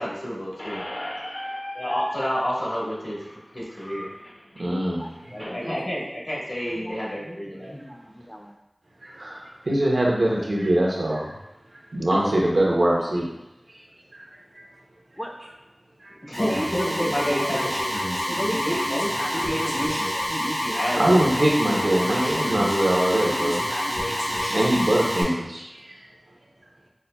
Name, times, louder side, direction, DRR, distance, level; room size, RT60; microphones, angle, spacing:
voice 1, 0.0-0.9 1.7-4.1 5.3-7.7 16.2-17.7 18.3-20.0 20.3-21.8, equal, 70° left, -6 dB, 1.3 m, -29 dB
Squeak, 0.6-5.6, equal, 45° left, 0.6 m, -36 dB
voice 2, 4.6-5.2 9.0-11.3 11.9-13.3 14.1-14.2 21.0-23.6 24.3-25.7, right 1 dB, 85° right, -3 dB, 0.7 m, -22 dB
voice 3, 5.4-6.1 6.8-7.0 7.2-8.6 12.1-12.3 15.2-15.3 16.4-17.2 17.9-18.7 20.1-20.2, equal, ahead, 2 dB, 0.4 m, -39 dB
Alarm, 16.3-25.2, equal, 90° left, 1.3 m, -27 dB
5.4 x 2.1 x 2.2 m, 0.91 s
wide cardioid pair, 40°, 0 cm